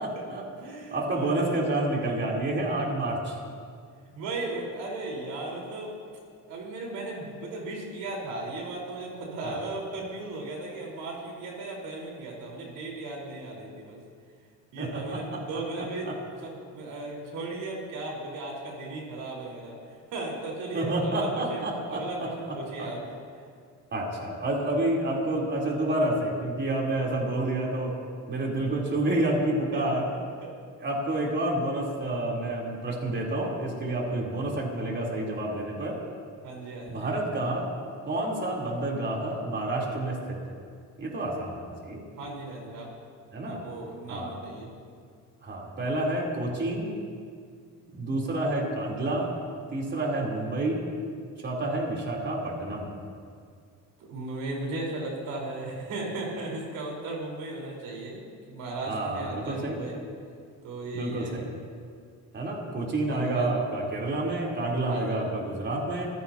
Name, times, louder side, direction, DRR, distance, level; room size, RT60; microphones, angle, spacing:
voice 1, 0.0-0.4 0.9-3.4 9.4-9.6 14.8-15.4 16.0-16.1 20.7-22.9 23.9-27.9 28.3-30.0 30.8-36.0 36.9-37.7 38.0-40.4 41.0-42.0 43.3-43.6 44.1-44.3 45.4-46.9 47.9-49.3 49.7-50.8 51.4-52.9 58.8-59.8 60.9-61.5 62.3-66.1, right 1 dB, 35° right, -3 dB, 3.9 m, -29 dB
voice 2, 0.6-1.6 4.1-5.9 6.5-14.0 14.7-16.1 16.4-19.8 20.1-21.6 21.9-23.1 29.7-29.9 30.4-30.5 36.4-37.1 42.2-42.9 43.4-44.7 54.0-60.0 60.6-61.4 63.1-63.5 64.9-65.2, right 2 dB, 80° right, -2 dB, 4.8 m, -36 dB
26.5 x 16.5 x 3.0 m, 2.2 s
cardioid pair, 120°, 32 cm